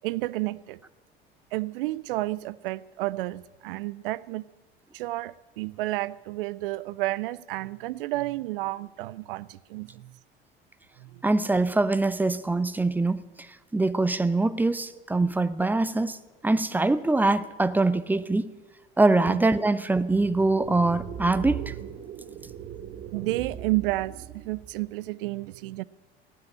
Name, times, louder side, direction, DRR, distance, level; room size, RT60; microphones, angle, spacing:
voice 1, 0.0-0.8 1.5-4.5 4.9-10.2 11.0-11.2 19.3-19.4 23.1-25.8, right 18 dB, 60° right, 0.5 m, -31 dB
voice 2, 11.2-13.2 13.7-16.2 16.4-18.5 19.0-21.7, right 2 dB, 5° right, 0.5 m, -23 dB
sound 1, 20.0-24.8, right 9 dB, 35° right, 1.0 m, -39 dB
15.5 x 9.4 x 8.7 m
figure-of-eight pair, 70°, 32 cm